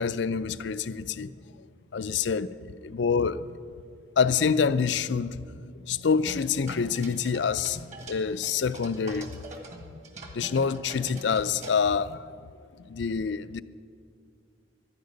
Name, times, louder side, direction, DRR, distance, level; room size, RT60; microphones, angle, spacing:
voice 1, 0.0-1.3 1.9-3.6 4.2-5.4 5.6-9.3 9.9-10.0 10.3-12.3 12.9-13.6, left 6 dB, 70° left, 0.5 m, -27 dB
sound 1, 6.2-9.8 10.0-12.1, right 2 dB, 40° right, 1.6 m, -43 dB
12.0 x 10.5 x 9.7 m
head